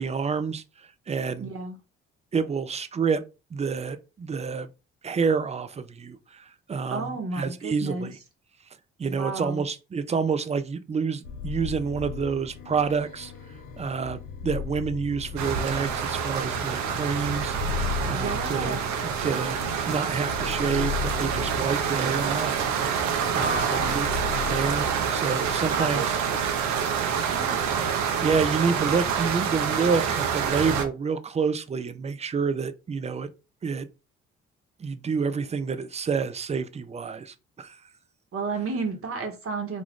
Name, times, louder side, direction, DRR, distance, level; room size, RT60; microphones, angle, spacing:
voice 1, 0.0-1.5 2.3-3.2 3.5-4.7 5.0-8.2 9.0-13.3 13.8-22.5 23.3-26.1 28.2-33.3 33.6-33.9 34.8-37.8, right 5 dB, 20° right, 0.4 m, -28 dB
voice 2, 1.4-1.8 6.9-8.1 9.1-9.6 18.1-18.9 23.3-24.0 25.7-26.4 27.2-27.9 38.3-39.8, right 3 dB, 50° right, 1.1 m, -32 dB
sound 1, 11.2-25.7, left 6 dB, 80° left, 0.6 m, -37 dB
sound 2, 15.4-30.8, right 7 dB, 70° right, 0.6 m, -27 dB
2.4 x 2.3 x 3.5 m
hypercardioid pair, 50°, 30 cm